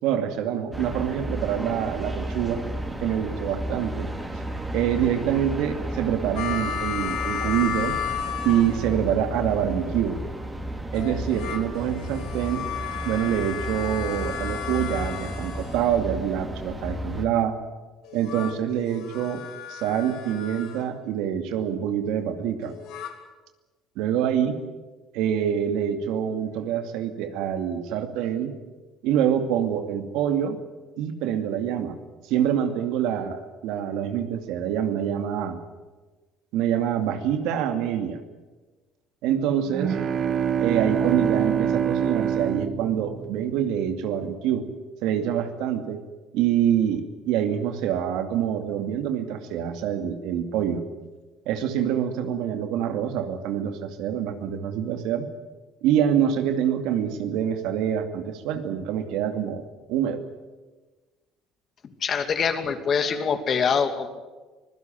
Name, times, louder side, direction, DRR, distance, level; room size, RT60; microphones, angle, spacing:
voice 1, 0.0-2.6 3.0-4.1 4.7-8.0 8.4-10.2 10.9-12.7 13.0-17.5 18.1-19.4 19.7-22.7 24.0-24.6 25.1-28.5 29.0-30.6 31.0-32.0 32.2-35.6 36.5-38.2 39.2-40.0 40.6-44.6 45.0-46.0 46.3-50.8 51.5-55.3 55.8-60.2, right 9 dB, 80° right, 7 dB, 2.4 m, -26 dB
sound 1, 0.7-17.3, right 1 dB, 15° right, 4.1 m, -33 dB
sound 2, 6.4-9.2 10.9-16.2 18.0-20.9 22.6-23.1, left 9 dB, 75° left, 3.2 m, -34 dB
sound 3, 39.7-43.7, right 8 dB, 50° right, 1.1 m, -25 dB
voice 2, 62.0-64.2, left 6 dB, 45° left, 8 dB, 2.7 m, -24 dB
25.0 x 16.5 x 9.2 m, 1.2 s
supercardioid pair, 90°, 0 cm